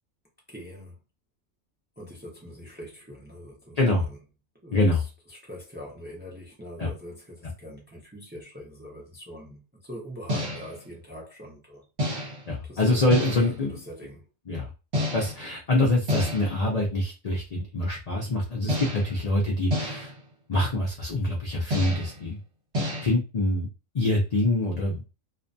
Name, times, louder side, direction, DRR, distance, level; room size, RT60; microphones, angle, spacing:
voice 1, 0.5-1.0 2.0-4.2 4.6-5.0 5.3-11.8 12.6-13.1 13.4-14.2, equal, 15° right, 0.4 m, -43 dB
voice 2, 3.8-4.1 4.7-5.0 6.8-6.9 12.5-13.7 14.5-14.7 15.1-20.1 20.5-22.4 23.0-23.7 23.9-25.0, left 2 dB, 70° left, 0.3 m, -25 dB
sound 1, 10.3-10.8 12.0-12.5 13.1-13.6 14.9-15.5 16.1-16.7 18.7-19.2 19.7-20.2 21.7-22.2 22.7-23.1, left 1 dB, 50° right, 1.3 m, -30 dB
2.5 x 2.2 x 2.5 m
omnidirectional pair, 1.4 m